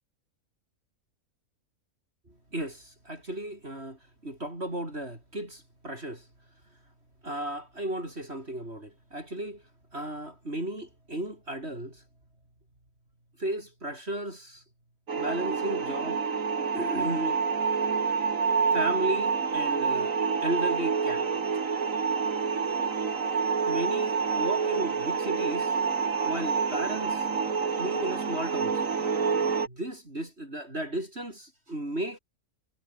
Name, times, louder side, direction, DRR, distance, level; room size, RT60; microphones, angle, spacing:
voice 1, 2.5-6.3 7.2-9.6 9.9-12.0 13.4-14.6 15.2-16.2 16.7-17.4 17.7-17.8 18.7-20.1 20.4-21.3 23.6-25.7 26.2-27.3 27.8-28.8 29.7-32.2, right 1 dB, 45° right, 8.1 m, -34 dB
sound 1, 15.1-29.7, right 5 dB, 65° right, 2.3 m, -27 dB
omnidirectional pair, 1.5 m